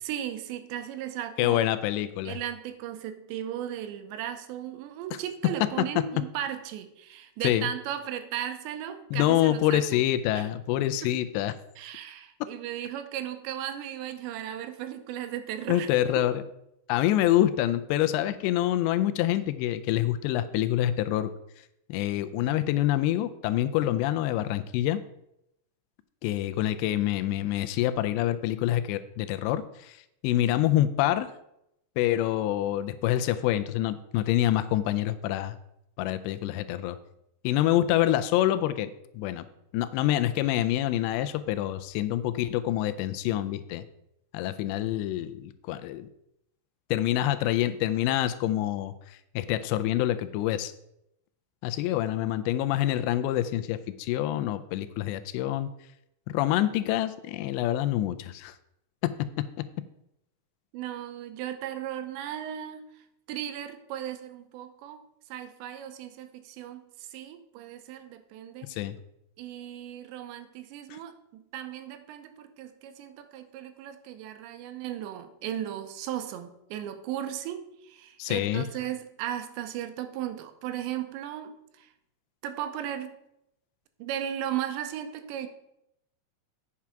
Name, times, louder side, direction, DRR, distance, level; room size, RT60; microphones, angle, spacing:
voice 1, 0.0-1.7 2.2-10.0 10.3-10.5 11.0-11.1 11.8-15.9 16.2-16.3 60.7-62.9 63.3-65.0 65.3-68.7 69.4-81.9 82.4-83.1 84.0-85.5, right 11 dB, 85° right, 9 dB, 3.0 m, -36 dB
voice 2, 1.4-2.4 7.4-7.7 9.1-11.6 15.7-16.4 16.9-21.3 21.9-25.0 26.2-31.3 32.0-35.6 36.0-37.0 37.4-39.5 39.7-43.8 44.3-46.1 46.9-50.7 51.6-55.7 56.3-58.6 59.0-59.1 59.4-59.5 68.7-69.0 70.9-71.0 78.2-78.7, left 13 dB, 85° left, 11 dB, 2.7 m, -26 dB
8.6 x 6.0 x 5.7 m, 0.81 s
omnidirectional pair, 5.1 m